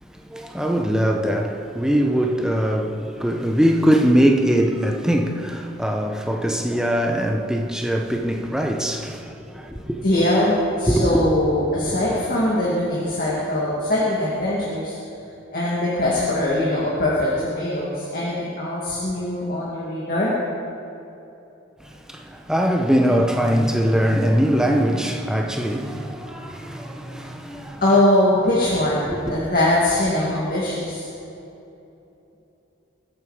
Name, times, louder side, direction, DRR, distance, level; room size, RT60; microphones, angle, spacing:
voice 1, 0.0-10.0 10.9-11.1 21.8-27.8 29.1-29.4, equal, 5° right, 0.9 m, -22 dB
voice 2, 10.0-15.0 15.5-20.4 27.8-31.1, left 1 dB, 45° left, 2.2 m, -21 dB
21.5 x 8.8 x 5.0 m
head